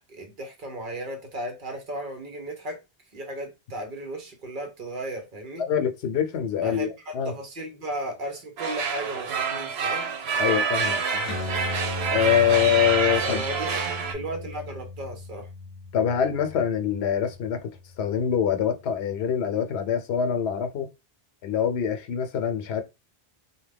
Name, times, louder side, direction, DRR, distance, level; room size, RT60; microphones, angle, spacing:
voice 1, 0.0-2.8 3.1-5.6 6.6-6.9 7.2-10.1 13.2-15.5, right 1 dB, 55° right, 1.0 m, -35 dB
voice 2, 5.7-7.3 10.4-11.4 12.1-13.4 15.9-20.9 21.4-22.8, left 8 dB, 85° left, 0.8 m, -25 dB
sound 1, 8.6-14.1, right 5 dB, 85° right, 0.9 m, -27 dB
sound 2, 11.3-18.2, left 3 dB, 40° left, 0.7 m, -37 dB
2.8 x 2.1 x 3.3 m
omnidirectional pair, 1.0 m